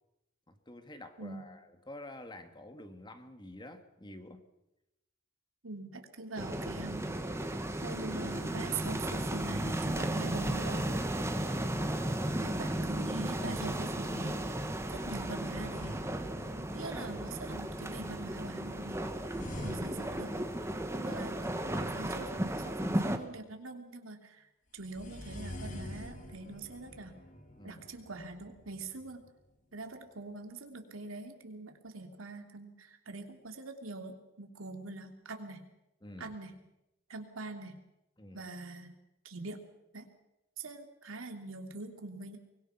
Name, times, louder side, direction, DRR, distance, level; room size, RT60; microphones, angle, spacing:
voice 1, 0.5-4.4 16.3-16.7 19.3-19.7 20.0-20.1 27.6-27.8 36.0-36.4 38.2-38.5, left 1 dB, 20° left, 8 dB, 1.7 m, -49 dB
voice 2, 5.6-7.1 7.8-10.9 12.4-14.4 14.9-16.0 16.6-19.0 19.6-20.4 20.9-27.2 27.6-29.2 29.7-35.6 36.2-36.5 37.1-37.8 38.3-38.9 39.2-39.6 39.9-40.1 40.6-42.4, right 3 dB, 90° right, 5 dB, 2.9 m, -43 dB
sound 1, 6.4-23.2, right 1 dB, 15° right, 1.5 m, -35 dB
sound 2, 14.9-17.1 19.3-21.5 24.8-29.5, left 1 dB, 40° left, 2.4 m, -47 dB
24.0 x 21.5 x 5.8 m, 0.90 s
head